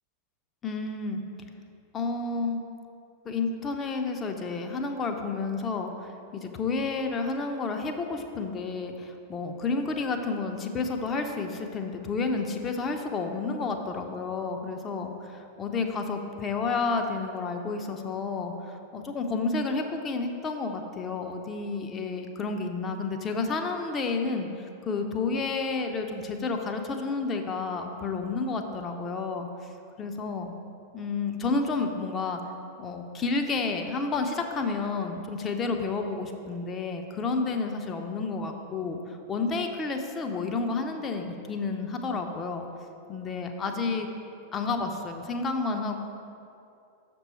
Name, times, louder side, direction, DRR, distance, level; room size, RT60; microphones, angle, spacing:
voice 1, 0.6-1.2 1.9-2.6 3.2-29.5 30.0-30.5 30.9-32.4 32.8-42.6 43.1-44.1 44.5-46.0, left 4 dB, 25° left, 4 dB, 0.6 m, -30 dB
6.5 x 6.0 x 4.5 m, 2.6 s
figure-of-eight pair, 90°, 0 cm